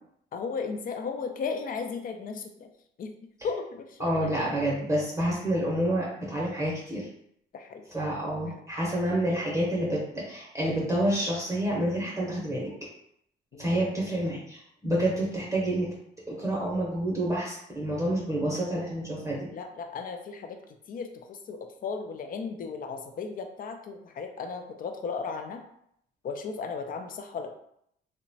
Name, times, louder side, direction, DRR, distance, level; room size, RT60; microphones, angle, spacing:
voice 1, 0.3-2.7 3.0-3.1 3.4-4.3 7.5-7.8 13.5-13.9 19.5-20.6 20.9-25.6 26.2-27.5, left 5 dB, 45° left, 5 dB, 0.4 m, -35 dB
voice 2, 4.0-7.1 7.9-12.7 13.6-15.9 16.3-19.5, right 1 dB, 15° right, -5 dB, 0.8 m, -28 dB
2.8 x 2.2 x 2.7 m, 0.73 s
cardioid pair, 90°, 20 cm